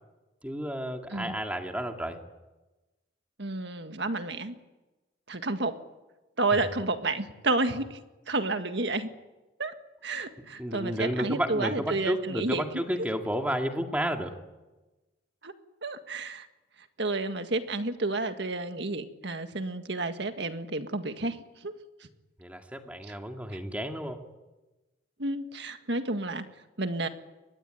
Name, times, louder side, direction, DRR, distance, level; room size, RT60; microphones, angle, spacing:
voice 1, 0.4-2.2 10.6-14.3 22.4-24.2, equal, 5° right, 4 dB, 2.3 m, -31 dB
voice 2, 3.4-4.5 5.3-5.7 6.4-8.0 8.3-9.1 9.6-9.7 10.0-12.6 15.4-15.5 15.8-16.5 17.0-21.4 21.6-21.7 25.2-26.5 26.8-27.1, right 2 dB, 60° right, 8 dB, 1.8 m, -30 dB
24.0 x 20.0 x 9.3 m, 1.1 s
head